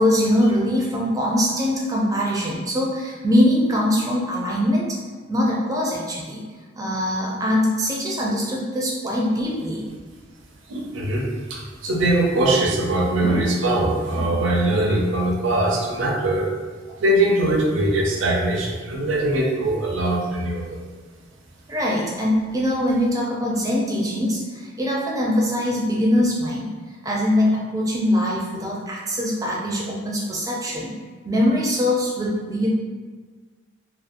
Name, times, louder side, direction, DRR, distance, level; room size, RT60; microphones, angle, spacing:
voice 1, 0.0-5.0 5.3-6.4 6.8-9.8 21.7-26.7 27.0-30.9 31.2-32.7, left 1 dB, 15° right, -4 dB, 0.4 m, -22 dB
voice 2, 10.7-16.5 17.0-20.8, right 1 dB, 75° right, -1 dB, 0.5 m, -21 dB
2.7 x 2.4 x 2.5 m, 1.5 s
head